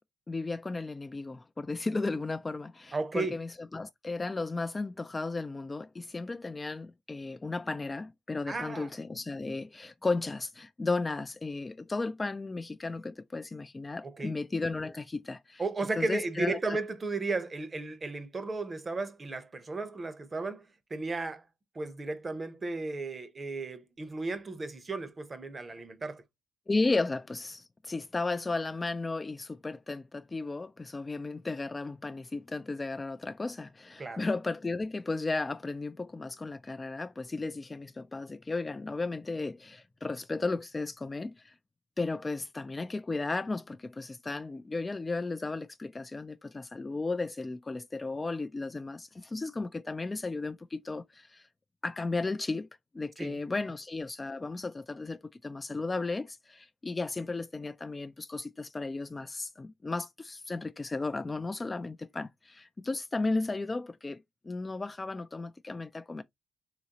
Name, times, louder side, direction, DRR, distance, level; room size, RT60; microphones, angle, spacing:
voice 1, 0.3-15.6 16.0-16.8 26.7-41.5 42.0-51.5 51.8-52.7 52.9-66.2, left 3 dB, 25° left, 0.3 m, -34 dB
voice 2, 2.9-3.4 8.5-8.9 14.0-14.3 15.6-21.4 21.7-26.2 34.0-34.2 53.2-53.4, right 3 dB, 30° right, 0.8 m, -34 dB
3.9 x 3.0 x 2.8 m
cardioid pair, 90°, 0 cm